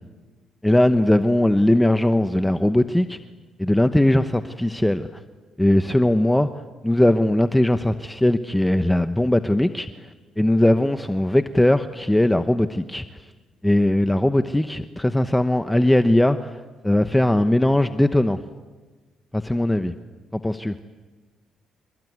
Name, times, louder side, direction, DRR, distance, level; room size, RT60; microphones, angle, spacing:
voice 1, 0.6-3.2 3.6-5.2 5.6-6.5 6.8-9.9 10.4-13.0 13.6-18.4 19.3-19.9 20.3-20.7, left 1 dB, 5° left, 9 dB, 1.0 m, -19 dB
28.0 x 22.5 x 9.4 m, 1.3 s
cardioid pair, 90°, 0 cm